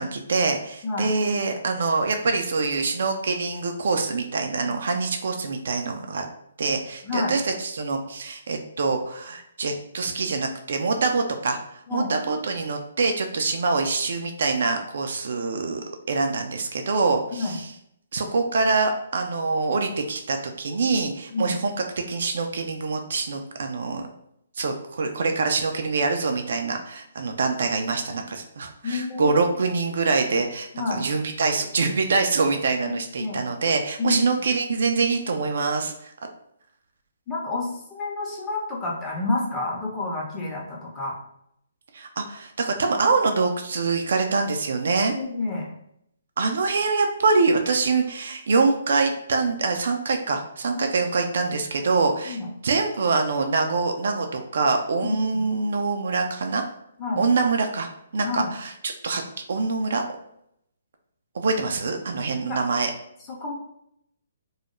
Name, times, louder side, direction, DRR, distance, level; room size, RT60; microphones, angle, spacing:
voice 1, 0.0-6.2 6.6-15.8 16.1-17.7 18.1-24.1 24.6-36.1 41.9-45.1 46.4-52.4 52.6-56.6 57.2-57.9 58.1-59.2 59.5-60.0 61.3-62.9, right 4 dB, 60° right, 5 dB, 0.3 m, -25 dB
voice 2, 7.0-7.3 11.9-12.1 17.3-17.6 21.3-21.6 28.8-29.4 30.7-31.1 33.2-33.5 34.0-34.3 37.3-41.2 45.1-45.7 50.7-50.8 52.2-52.5 55.0-55.4 57.0-57.2 58.2-58.5 62.4-62.6 63.3-63.5, left 3 dB, 20° left, -3 dB, 0.7 m, -29 dB
2.3 x 2.0 x 3.0 m, 0.74 s
figure-of-eight pair, 135°, 0 cm